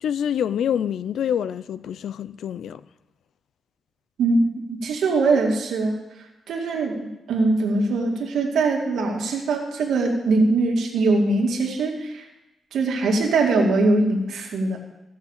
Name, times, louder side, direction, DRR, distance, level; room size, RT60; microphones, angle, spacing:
voice 1, 0.0-2.8, left 9 dB, 75° left, 0.5 m, -26 dB
voice 2, 4.2-6.0 6.5-7.0 7.3-12.3 12.7-14.8, right 3 dB, 80° right, 2.4 m, -22 dB
15.5 x 6.5 x 7.3 m
wide cardioid pair, 160°, 0 cm